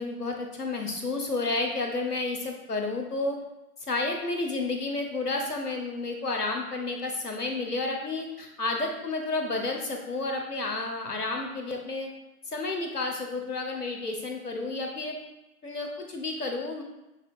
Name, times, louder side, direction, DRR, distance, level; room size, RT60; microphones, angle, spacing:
voice 1, 0.0-3.4 3.8-12.1 12.5-15.2 15.6-16.8, left 3 dB, 90° left, 2 dB, 0.9 m, -31 dB
6.5 x 2.4 x 2.5 m, 0.97 s
figure-of-eight pair, 125°, 45 cm